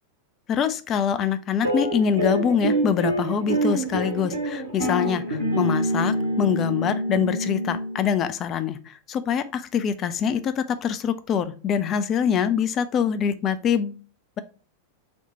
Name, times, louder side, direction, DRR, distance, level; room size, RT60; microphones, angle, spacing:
voice 1, 0.5-14.0, left 7 dB, 30° left, 12 dB, 0.3 m, -24 dB
sound 1, 1.6-8.2, right 1 dB, 75° right, 1.1 m, -26 dB
4.2 x 2.1 x 4.0 m, 0.37 s
figure-of-eight pair, 90°, 0 cm